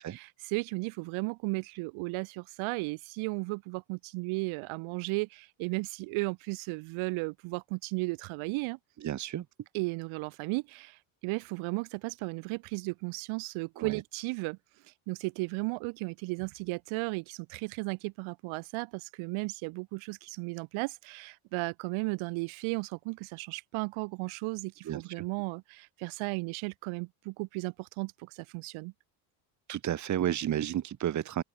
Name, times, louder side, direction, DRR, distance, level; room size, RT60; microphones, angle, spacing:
voice 1, 0.0-8.8 9.7-14.6 15.1-28.9, right 26 dB, 70° right, 7.3 m, -35 dB
voice 2, 9.0-9.4 13.8-14.0 24.8-25.2 29.7-31.4, right 11 dB, 35° right, 3.0 m, -32 dB
open air
cardioid pair, 160°, 49 cm